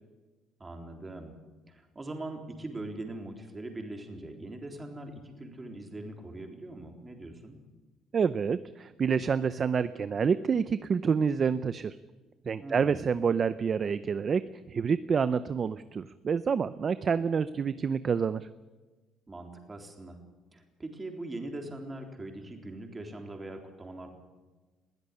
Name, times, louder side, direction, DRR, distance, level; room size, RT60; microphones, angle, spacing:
voice 1, 0.6-1.4 1.7-7.6 12.6-13.0 19.3-20.2 20.5-24.1, right 2 dB, 15° right, 3 dB, 3.7 m, -41 dB
voice 2, 8.1-12.0 12.5-14.4 14.7-18.5, right 6 dB, 35° right, 14 dB, 0.6 m, -28 dB
21.5 x 16.0 x 9.9 m, 1.2 s
cardioid pair, 140°, 0 cm